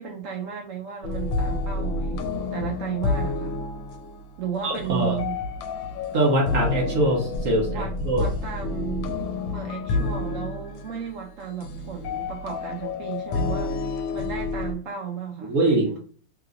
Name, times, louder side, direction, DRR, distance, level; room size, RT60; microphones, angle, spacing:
voice 1, 0.0-3.6 4.4-5.4 7.7-9.2 9.5-13.8 14.1-16.0, right 7 dB, 75° right, 0.7 m, -34 dB
sound 1, 1.0-14.7, left 3 dB, 90° left, 1.3 m, -29 dB
voice 2, 4.6-5.2 6.1-8.3 15.5-16.0, right 1 dB, 55° right, 1.0 m, -23 dB
3.2 x 2.9 x 2.5 m
omnidirectional pair, 2.0 m